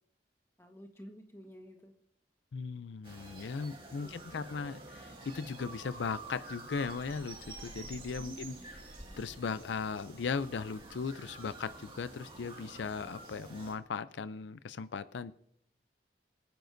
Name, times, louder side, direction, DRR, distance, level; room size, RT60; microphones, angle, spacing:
voice 1, 0.6-1.9 3.3-3.4 4.0-4.5 8.2-8.7, equal, 15° left, 4 dB, 1.3 m, -51 dB
voice 2, 2.5-8.5 9.2-15.3, left 5 dB, 80° left, 15 dB, 0.4 m, -38 dB
sound 1, 3.0-13.7, right 2 dB, 30° right, 2.0 m, -49 dB
25.0 x 9.3 x 2.6 m, 0.70 s
head